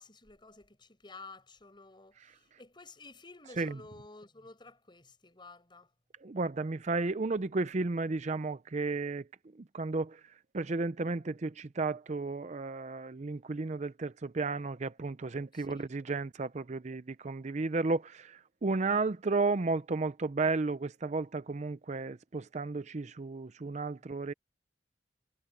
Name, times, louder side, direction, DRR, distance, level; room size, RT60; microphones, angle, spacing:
voice 1, 0.0-5.9 15.5-15.9, left 3 dB, 25° left, 5.3 m, -52 dB
voice 2, 6.2-9.3 9.6-24.3, right 3 dB, 40° right, 0.5 m, -33 dB
head